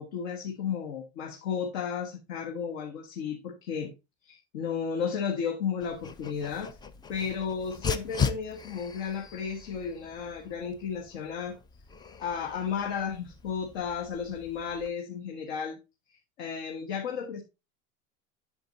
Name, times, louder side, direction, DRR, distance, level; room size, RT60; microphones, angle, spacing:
voice 1, 0.0-3.9 4.2-6.7 7.1-11.5 12.2-15.8 16.4-17.4, left 6 dB, 70° left, 1.4 m, -33 dB
Dog, 5.8-14.9, left 6 dB, 15° left, 0.4 m, -38 dB
7.8 x 7.1 x 2.7 m
hypercardioid pair, 105°, 33 cm